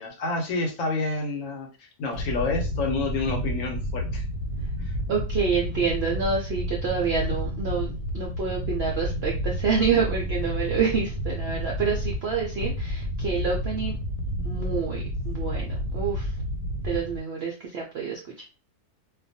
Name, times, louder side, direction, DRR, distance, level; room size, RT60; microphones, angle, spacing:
voice 1, 0.0-4.2 4.8-5.0, left 3 dB, 65° left, 2 dB, 0.9 m, -29 dB
sound 1, 2.1-17.2, equal, 90° left, 1.1 m, -30 dB
voice 2, 5.1-14.0 14.4-16.3 16.8-18.4, right 5 dB, 70° right, -1 dB, 0.6 m, -28 dB
2.4 x 2.2 x 2.6 m, 0.32 s
omnidirectional pair, 1.6 m